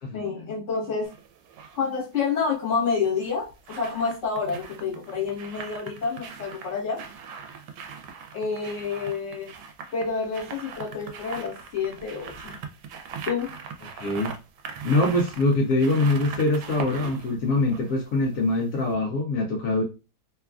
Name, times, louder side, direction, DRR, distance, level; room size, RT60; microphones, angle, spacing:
voice 1, 0.1-1.1 1.7-7.0 8.3-9.5 9.9-12.6 13.2-13.5, left 5 dB, 50° left, 1.4 m, -28 dB
sound 1, 1.0-1.8 3.0-18.6 18.9-19.0, right 6 dB, 85° right, 1.2 m, -40 dB
voice 2, 13.9-14.3 14.8-19.8, left 2 dB, 70° left, 0.8 m, -23 dB
3.0 x 2.3 x 2.3 m
omnidirectional pair, 1.8 m